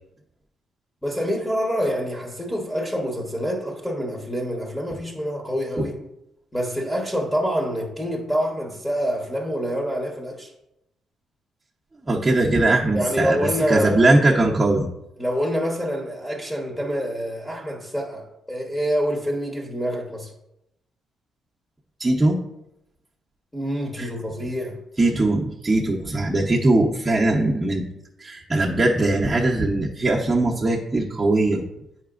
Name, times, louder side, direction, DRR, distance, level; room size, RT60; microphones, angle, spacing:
voice 1, 1.0-6.0 6.5-10.5 12.6-14.1 15.2-20.3 23.5-24.8, equal, 10° left, 1.2 m, -26 dB
voice 2, 12.1-14.9 22.0-22.4 24.0-24.1 25.0-27.8 28.2-31.6, right 2 dB, 20° right, 0.9 m, -20 dB
8.6 x 5.8 x 2.5 m
cardioid pair, 90°, 0 cm